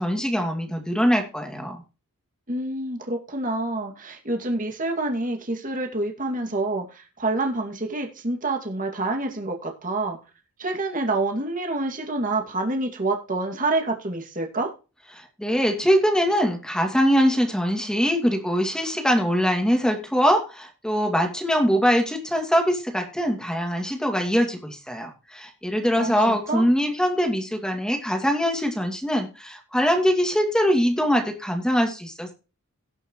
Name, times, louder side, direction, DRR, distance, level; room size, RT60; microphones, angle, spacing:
voice 1, 0.0-1.8 15.1-32.3, equal, 5° left, 3 dB, 2.3 m, -23 dB
voice 2, 2.5-10.2 10.6-14.7 26.0-26.7, right 2 dB, 35° right, 3 dB, 2.3 m, -27 dB
18.0 x 6.5 x 3.1 m, 0.31 s
head